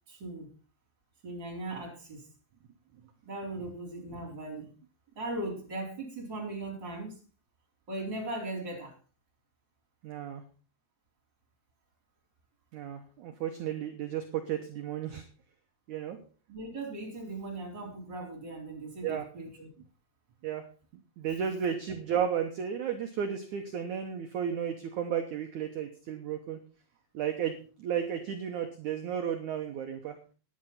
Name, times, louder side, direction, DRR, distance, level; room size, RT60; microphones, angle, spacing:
voice 1, 0.1-0.5 1.2-2.3 3.2-4.7 5.1-7.1 7.9-8.9 16.5-19.7, right 2 dB, 25° right, 1 dB, 4.9 m, -38 dB
voice 2, 10.0-10.4 12.7-15.2 15.9-16.2 19.0-19.3 20.4-20.6 21.2-26.6 27.1-30.2, right 8 dB, 75° right, 6 dB, 1.8 m, -33 dB
10.5 x 10.0 x 5.7 m, 0.37 s
omnidirectional pair, 5.0 m